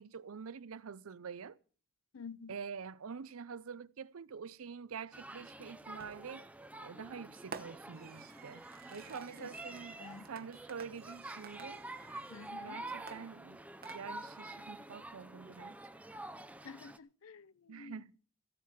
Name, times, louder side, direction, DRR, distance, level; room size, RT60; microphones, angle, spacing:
voice 1, 0.0-1.6 2.5-6.4 6.8-8.6 8.9-11.8 12.6-13.6 13.9-15.8 17.7-18.1, right 6 dB, 75° right, 0.5 m, -46 dB
voice 2, 2.1-2.5 9.4-9.5 10.0-10.3 12.3-12.8 16.6-18.0, left 5 dB, 70° left, 0.6 m, -50 dB
sound 1, 5.1-17.0, right 2 dB, 5° right, 0.6 m, -48 dB
Fireworks, 6.0-6.4 7.5-12.6 13.1-14.4, right 5 dB, 45° right, 1.0 m, -53 dB
15.5 x 7.5 x 7.3 m
head